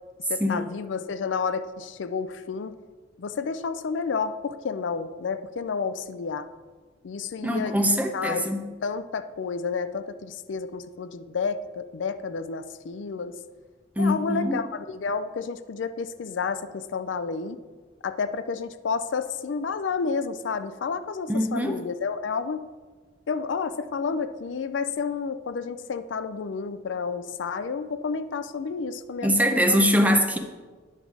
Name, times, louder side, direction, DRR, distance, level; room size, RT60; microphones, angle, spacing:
voice 1, 0.3-2.7 3.2-6.5 7.0-8.5 8.8-13.4 14.0-17.6 18.0-22.6 23.3-29.8, left 5 dB, 75° left, 12 dB, 0.4 m, -30 dB
voice 2, 7.4-8.7 14.0-14.6 21.3-21.8 29.2-30.4, equal, 10° right, 4 dB, 0.7 m, -23 dB
10.0 x 5.4 x 4.7 m, 1.4 s
head